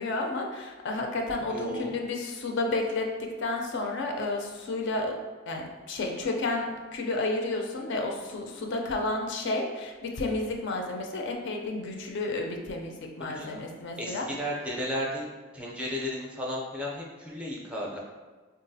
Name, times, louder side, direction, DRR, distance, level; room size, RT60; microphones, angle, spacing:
voice 1, 0.0-5.1 5.5-14.3, left 2 dB, 60° left, 2 dB, 0.4 m, -31 dB
voice 2, 1.5-1.9 13.4-13.6 14.0-15.3 15.5-18.0, equal, 5° right, -4 dB, 0.5 m, -34 dB
3.8 x 2.3 x 2.6 m, 1.3 s
head